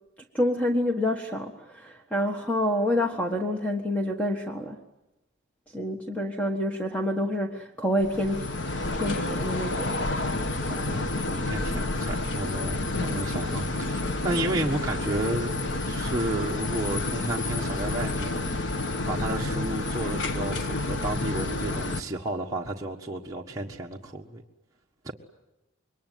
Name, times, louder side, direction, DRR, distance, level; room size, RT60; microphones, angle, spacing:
voice 1, 0.3-4.8 5.7-8.5 8.9-10.2, left 1 dB, 5° left, 1.5 m, -27 dB
sound 1, 8.0-22.0, left 2 dB, 60° left, 1.4 m, -29 dB
voice 2, 10.7-15.6 15.9-18.5 19.1-24.4 25.0-25.1, right 1 dB, 15° right, 1.5 m, -32 dB
27.0 x 22.5 x 9.3 m
head